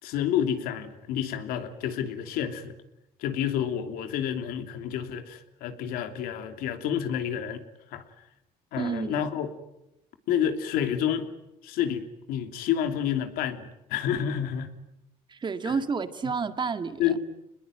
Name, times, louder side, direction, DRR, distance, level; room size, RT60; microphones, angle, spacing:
voice 1, 0.0-2.7 3.2-7.6 7.9-8.0 8.7-9.5 10.3-11.2 11.6-14.7 15.6-15.7 17.0-17.2, left 9 dB, 80° left, 8 dB, 3.0 m, -29 dB
voice 2, 8.8-9.3 15.3-17.2, right 5 dB, 30° right, 10 dB, 2.0 m, -30 dB
26.5 x 21.0 x 9.1 m, 0.88 s
cardioid pair, 105°, 15 cm